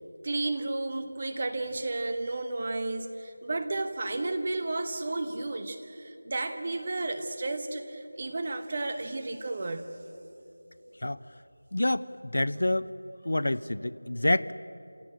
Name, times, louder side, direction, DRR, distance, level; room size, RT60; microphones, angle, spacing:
voice 1, 0.2-9.9 12.5-12.6, right 2 dB, 20° right, 8 dB, 1.0 m, -32 dB
voice 2, 11.7-12.1 12.3-12.9 13.2-14.5, left 1 dB, 60° left, 16 dB, 0.7 m, -27 dB
28.0 x 17.0 x 8.9 m, 2.9 s
figure-of-eight pair, 180°, 0 cm